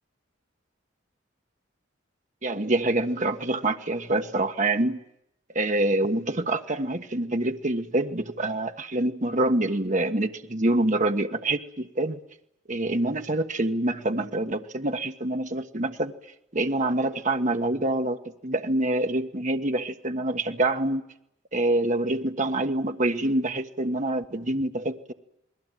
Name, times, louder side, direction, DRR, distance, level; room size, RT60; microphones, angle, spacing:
voice 1, 2.4-5.0 5.5-12.2 12.7-16.1 16.5-18.2 18.4-21.0 21.5-25.1, right 2 dB, 40° right, 1.4 m, -26 dB
29.5 x 21.0 x 9.2 m
head